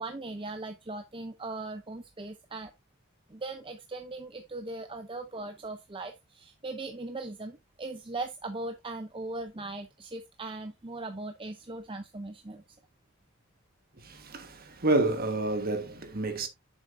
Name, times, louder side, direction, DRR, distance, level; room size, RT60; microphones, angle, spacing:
voice 1, 0.0-2.7 3.3-12.6, right 2 dB, 25° right, 0.6 m, -39 dB
voice 2, 14.0-16.5, right 2 dB, 40° right, 1.5 m, -29 dB
8.7 x 7.1 x 2.6 m
head